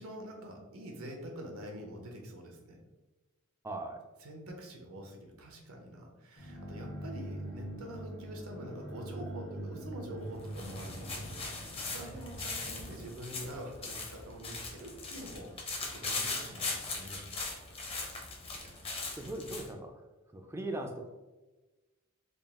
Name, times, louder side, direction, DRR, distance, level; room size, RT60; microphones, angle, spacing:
voice 1, 0.0-2.8 4.2-17.2, right 1 dB, 85° right, 2 dB, 0.8 m, -46 dB
voice 2, 3.6-4.0 19.2-20.0 20.3-21.1, right 1 dB, 10° right, 4 dB, 0.3 m, -39 dB
sound 1, 6.4-14.1, right 1 dB, 70° left, 0.8 m, -44 dB
sound 2, 10.2-19.7, left 3 dB, 25° left, 0.7 m, -40 dB
3.9 x 2.4 x 3.5 m, 1.2 s
head